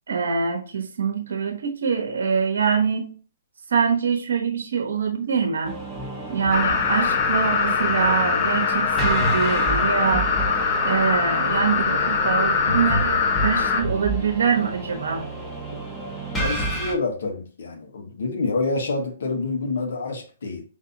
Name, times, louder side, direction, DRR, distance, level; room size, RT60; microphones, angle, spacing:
voice 1, 0.1-3.2 3.7-5.8 6.3-10.3 10.8-15.3, right 6 dB, 75° right, 0.8 m, -24 dB
sound 1, 5.6-17.0, right 2 dB, 10° left, 1.0 m, -30 dB
sound 2, 6.5-13.8, left 5 dB, 40° left, 0.6 m, -22 dB
voice 2, 16.4-20.6, left 3 dB, 75° left, 1.0 m, -27 dB
5.1 x 2.7 x 2.6 m
hypercardioid pair, 140°, 0 cm